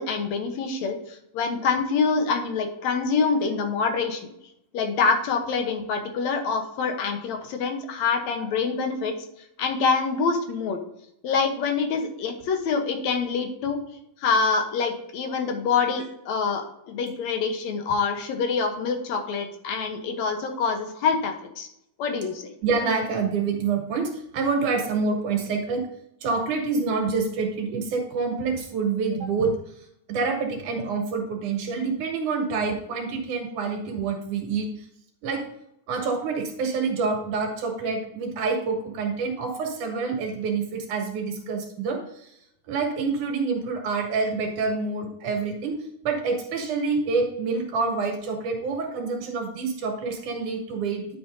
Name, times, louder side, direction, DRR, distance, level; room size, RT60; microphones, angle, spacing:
voice 1, 0.0-4.3 4.7-9.1 9.6-10.8 11.2-13.8 14.2-21.7 22.0-22.5, left 5 dB, 65° left, 5 dB, 2.0 m, -26 dB
voice 2, 22.6-25.9 26.2-29.6 30.1-34.9 35.2-35.5 35.9-42.3 42.7-51.1, right 4 dB, 70° right, 2 dB, 2.8 m, -27 dB
10.5 x 7.5 x 2.7 m, 0.78 s
omnidirectional pair, 3.9 m